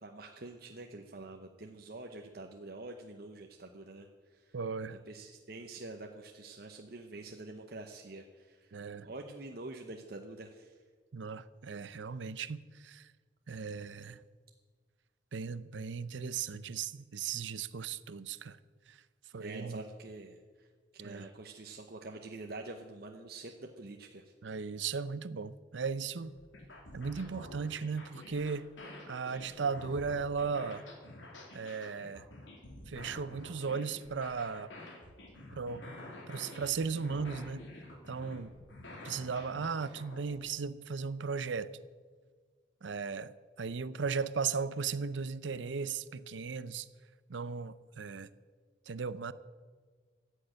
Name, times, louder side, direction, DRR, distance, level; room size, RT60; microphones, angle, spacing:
voice 1, 0.0-4.6 4.9-8.7 9.0-10.8 19.4-20.7 20.9-24.2, right 2 dB, 55° right, 0.9 m, -46 dB
voice 2, 4.5-5.0 8.7-9.1 11.1-13.1 13.5-14.2 15.3-18.6 18.9-19.0 19.3-19.8 21.0-21.3 24.4-26.3 26.9-28.8 29.1-30.8 31.5-32.3 32.9-34.7 35.5-35.9 36.3-37.7 38.1-38.5 39.0-41.8 42.8-46.9 47.3-48.3 48.9-49.3, right 5 dB, 80° right, 0.6 m, -36 dB
sound 1, 26.2-40.5, left 1 dB, 85° left, 2.7 m, -49 dB
15.0 x 6.6 x 9.0 m
head